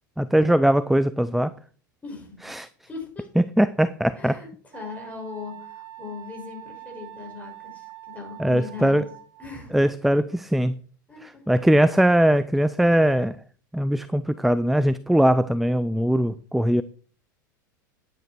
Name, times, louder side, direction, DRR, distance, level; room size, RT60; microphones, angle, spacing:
voice 1, 0.2-1.5 2.5-2.7 3.4-4.4 8.4-9.0 9.7-10.8 11.2-13.4 13.7-16.8, right 1 dB, ahead, 15 dB, 0.4 m, -20 dB
voice 2, 2.0-2.5 2.8-3.3 4.1-9.1 9.4-9.8 11.1-11.4, left 5 dB, 15° left, 0 dB, 6.3 m, -39 dB
Wind instrument woodwind instrument, 4.7-9.7, right 15 dB, 45° right, 2.3 m, -44 dB
10.5 x 9.3 x 4.5 m, 0.43 s
hypercardioid pair, 90°, 11 cm